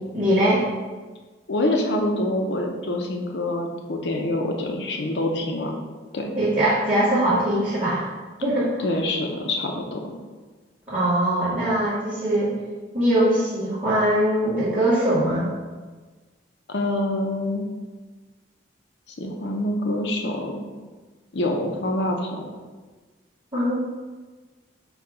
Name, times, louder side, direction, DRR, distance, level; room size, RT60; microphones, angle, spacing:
voice 1, 0.1-0.7 6.4-8.1 8.4-8.7 10.9-12.5 12.9-15.5 23.5-23.8, right 1 dB, 30° right, -11 dB, 1.4 m, -21 dB
voice 2, 1.5-5.7 6.1-6.3 8.8-10.2 16.7-17.7 19.2-20.6 21.3-22.5, left 1 dB, 70° left, 2 dB, 0.6 m, -26 dB
4.7 x 2.3 x 4.8 m, 1.3 s
head